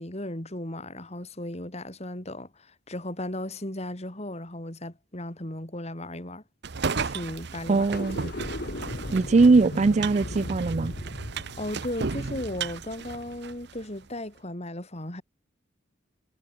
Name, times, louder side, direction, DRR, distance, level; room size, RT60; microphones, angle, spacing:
voice 1, 0.0-6.4 7.0-7.9 11.6-15.2, left 1 dB, 30° left, 3.1 m, -36 dB
sound 1, 6.6-13.8, right 5 dB, 55° right, 0.8 m, -34 dB
voice 2, 7.7-8.2 9.1-10.9, right 3 dB, 35° right, 0.4 m, -20 dB
sound 2, 7.8-13.1, left 1 dB, 50° left, 2.1 m, -37 dB
head